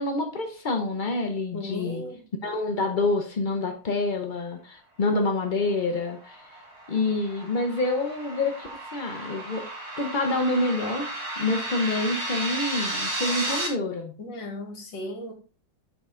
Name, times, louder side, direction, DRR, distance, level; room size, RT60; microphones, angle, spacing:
voice 1, 0.0-2.0 2.4-6.5 6.9-9.7 10.0-14.1, left 2 dB, 85° left, 3 dB, 0.4 m, -27 dB
voice 2, 1.5-2.2 14.2-15.3, left 1 dB, 65° left, 3 dB, 2.5 m, -36 dB
sound 1, 6.0-13.7, right 1 dB, 35° right, 1.9 m, -33 dB
7.1 x 5.5 x 3.7 m, 0.35 s
omnidirectional pair, 2.1 m